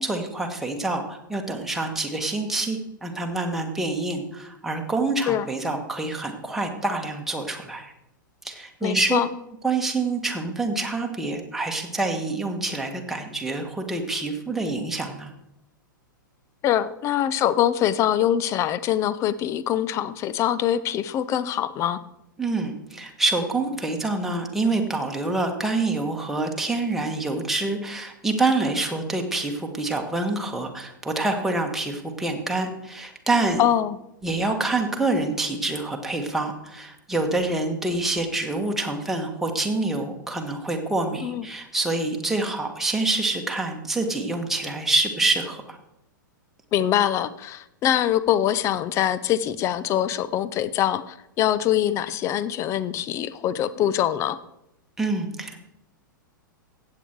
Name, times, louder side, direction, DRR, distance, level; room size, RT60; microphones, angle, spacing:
voice 1, 0.0-7.9 8.4-9.2 9.6-15.3 22.4-33.6 34.2-45.8 55.0-55.6, right 2 dB, 5° right, 2 dB, 1.6 m, -26 dB
voice 2, 8.8-9.3 16.6-22.0 33.6-34.0 41.2-41.4 46.7-54.4, left 11 dB, 25° left, 16 dB, 0.6 m, -23 dB
15.0 x 8.6 x 4.7 m, 0.86 s
figure-of-eight pair, 100°, 11 cm